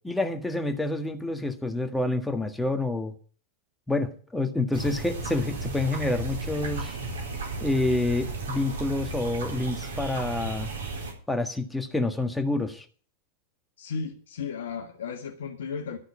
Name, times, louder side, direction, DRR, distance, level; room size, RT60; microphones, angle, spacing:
voice 1, 0.0-3.1 3.9-7.0 7.6-10.7 11.3-12.8, left 2 dB, 5° left, 6 dB, 1.5 m, -28 dB
sound 1, 4.7-11.1, right 3 dB, 65° right, 3.8 m, -34 dB
voice 2, 13.8-16.0, left 5 dB, 60° left, 4 dB, 1.5 m, -34 dB
12.5 x 6.3 x 8.4 m, 0.43 s
figure-of-eight pair, 90°, 0 cm